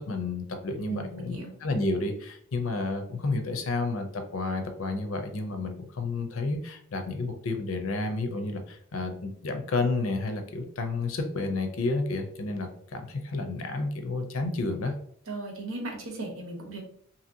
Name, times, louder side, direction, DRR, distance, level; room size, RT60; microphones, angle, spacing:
voice 1, 0.0-14.9, left 3 dB, 65° left, 6 dB, 0.5 m, -31 dB
voice 2, 0.8-1.5 15.3-16.8, right 2 dB, 70° right, 0 dB, 0.9 m, -36 dB
2.8 x 2.8 x 2.6 m, 0.63 s
head